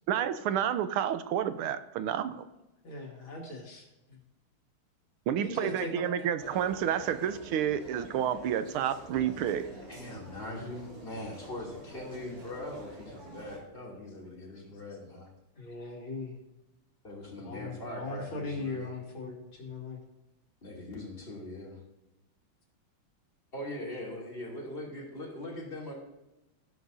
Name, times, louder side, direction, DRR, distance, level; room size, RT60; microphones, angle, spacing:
voice 1, 0.1-2.4 5.3-9.7, right 9 dB, 85° right, 11 dB, 1.6 m, -30 dB
voice 2, 2.8-4.2 5.4-6.3 10.2-10.7 15.6-16.4 17.4-20.0, left 2 dB, 70° left, -1 dB, 3.2 m, -39 dB
sound 1, 6.4-13.6, right 1 dB, 60° right, 3.4 m, -47 dB
voice 3, 9.9-15.3 17.0-18.9 20.6-21.8 23.5-25.9, left 1 dB, 25° left, -3 dB, 3.1 m, -41 dB
15.0 x 11.5 x 2.7 m, 0.96 s
omnidirectional pair, 2.3 m